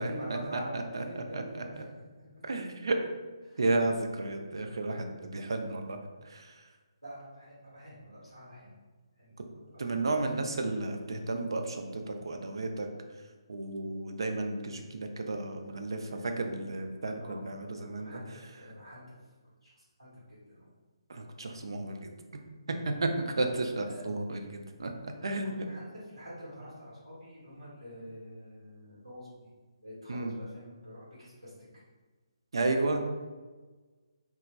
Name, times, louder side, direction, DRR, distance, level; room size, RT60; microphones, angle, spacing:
voice 1, 0.0-2.4 3.4-3.6 7.0-8.8 9.2-10.2 10.5-10.7 17.2-17.4 17.8-19.0 19.6-20.7 23.4-23.5 23.8-24.1 25.1-29.5 29.8-31.5, equal, 90° right, -8 dB, 1.0 m, -46 dB
voice 2, 0.7-1.6 2.5-3.0 3.6-6.0 6.3-6.5 9.8-12.9 13.5-18.2 21.1-22.1 22.7-24.9 25.2-25.6 30.1-30.3 32.5-33.0, right 2 dB, 60° right, 5 dB, 0.3 m, -32 dB
2.9 x 2.3 x 2.2 m, 1.3 s
figure-of-eight pair, 140°, 3 cm